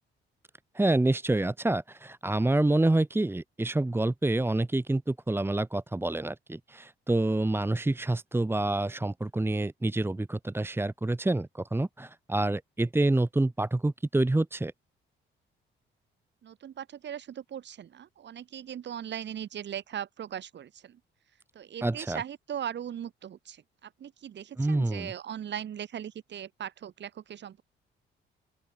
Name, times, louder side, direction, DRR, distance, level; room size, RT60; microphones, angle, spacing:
voice 1, 0.7-14.7 21.8-22.2 24.6-25.1, right 2 dB, 10° right, 1.3 m, -27 dB
voice 2, 16.4-21.0 21.5-27.6, right 9 dB, 65° right, 5.4 m, -39 dB
open air
cardioid pair, 90°, 20 cm